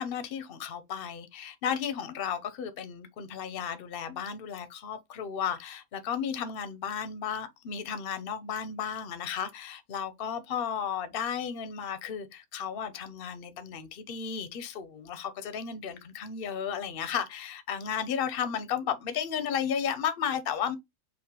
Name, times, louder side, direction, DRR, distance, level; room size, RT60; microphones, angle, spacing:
voice 1, 0.0-20.8, left 8 dB, 50° left, 0.7 m, -34 dB
5.1 x 2.5 x 3.7 m
omnidirectional pair, 1.6 m